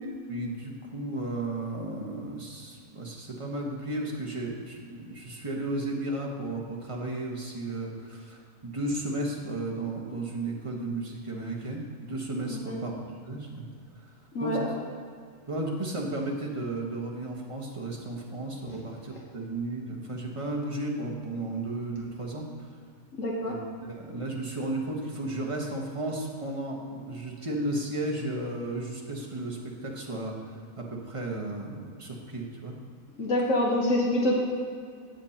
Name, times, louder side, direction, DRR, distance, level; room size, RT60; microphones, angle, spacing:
voice 1, 0.0-13.6 14.0-14.1 14.4-14.7 15.5-22.4 23.4-23.6 23.9-32.7, right 2 dB, 25° right, -2 dB, 1.4 m, -34 dB
voice 2, 23.2-23.6 33.2-34.4, left 1 dB, 65° left, -2 dB, 1.5 m, -26 dB
16.5 x 7.2 x 3.0 m, 2.2 s
omnidirectional pair, 1.5 m